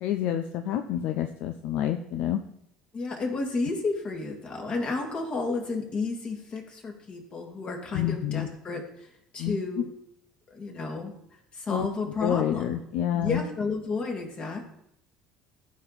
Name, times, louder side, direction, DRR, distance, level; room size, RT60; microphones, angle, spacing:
voice 1, 0.0-2.4 7.9-8.5 9.4-9.8 11.7-11.9 12.2-13.4, left 10 dB, 65° left, 7 dB, 0.6 m, -28 dB
voice 2, 2.9-9.1 9.3-9.9 10.5-11.1 11.5-12.7 13.1-14.7, left 3 dB, 40° left, 1 dB, 2.6 m, -32 dB
14.5 x 5.2 x 4.2 m, 0.75 s
hypercardioid pair, 70°, 3 cm